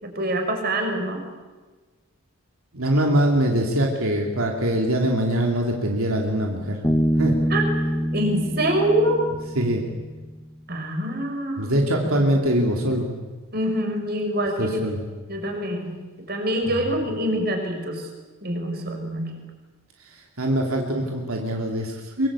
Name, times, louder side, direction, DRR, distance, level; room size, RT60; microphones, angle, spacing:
voice 1, 0.0-1.3 7.5-7.7 8.1-9.2 10.7-11.8 13.5-14.8 15.3-18.1 18.4-19.4, right 1 dB, 45° right, 3 dB, 5.4 m, -25 dB
voice 2, 2.7-6.8 7.2-7.4 9.5-9.9 11.6-13.1 14.6-15.1 20.0-22.3, right 1 dB, 80° right, 1 dB, 3.0 m, -23 dB
Bass guitar, 6.8-10.3, equal, 10° left, 1.2 m, -25 dB
23.5 x 23.5 x 8.5 m, 1.3 s
head